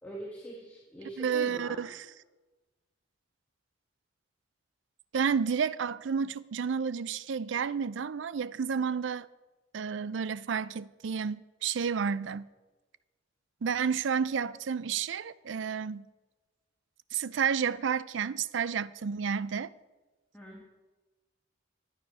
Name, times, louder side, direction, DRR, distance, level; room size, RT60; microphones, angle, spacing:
voice 1, 0.0-1.9 20.3-20.6, right 1 dB, 5° left, 1.7 m, -43 dB
voice 2, 1.2-2.0 5.1-9.3 9.7-12.5 13.6-16.1 17.1-19.7, right 6 dB, 70° right, 0.4 m, -31 dB
12.0 x 9.3 x 6.1 m
head